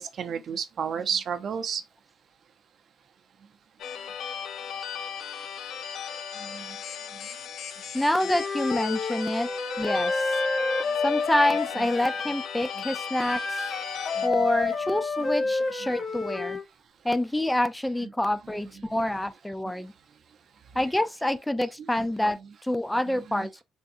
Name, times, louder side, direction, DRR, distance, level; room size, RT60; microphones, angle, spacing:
voice 1, 0.0-1.8 6.4-6.8 7.1-7.3 14.2-14.3 23.3-23.6, right 7 dB, 60° right, 0.5 m, -32 dB
sound 1, 3.8-14.3, left 7 dB, 70° left, 0.4 m, -36 dB
voice 2, 7.9-9.5 9.8-10.3 11.0-13.6 14.2-16.6 17.0-19.9 20.8-23.6, left 1 dB, 10° left, 0.3 m, -27 dB
Wind instrument woodwind instrument, 8.2-12.3 13.2-16.6, left 3 dB, 40° left, 0.8 m, -29 dB
3.5 x 2.7 x 2.4 m
cardioid pair, 90°, 0 cm